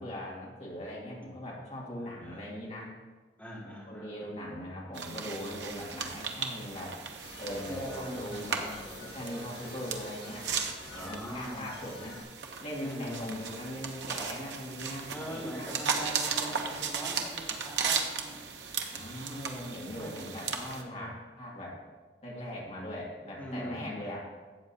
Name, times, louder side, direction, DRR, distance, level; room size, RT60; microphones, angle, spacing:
voice 1, 0.0-2.9 3.6-7.0 7.4-8.7 9.0-10.5 10.9-12.2 12.6-15.7 18.9-21.8 22.2-24.3, left 1 dB, 40° left, -4 dB, 2.2 m, -40 dB
voice 2, 2.1-2.5 3.4-4.6 7.6-9.0 10.9-11.7 12.8-13.4 15.1-18.4 19.9-20.1 20.5-21.2 23.4-24.2, equal, 10° left, -6 dB, 2.3 m, -42 dB
sound 1, 4.9-20.8, right 6 dB, 85° right, 0.9 m, -36 dB
sound 2, 7.2-12.2, left 2 dB, 60° left, 2.2 m, -48 dB
13.0 x 7.9 x 2.8 m, 1.3 s
head